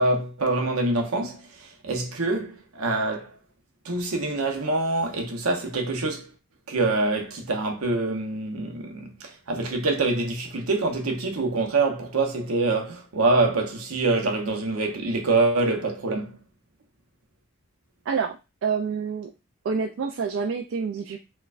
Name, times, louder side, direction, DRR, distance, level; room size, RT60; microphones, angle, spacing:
voice 1, 0.0-3.3 3.8-6.3 6.7-16.3, right 2 dB, 90° right, 0.8 m, -25 dB
voice 2, 18.1-19.3 19.6-21.2, right 5 dB, 60° right, 0.3 m, -28 dB
4.4 x 2.2 x 2.4 m
head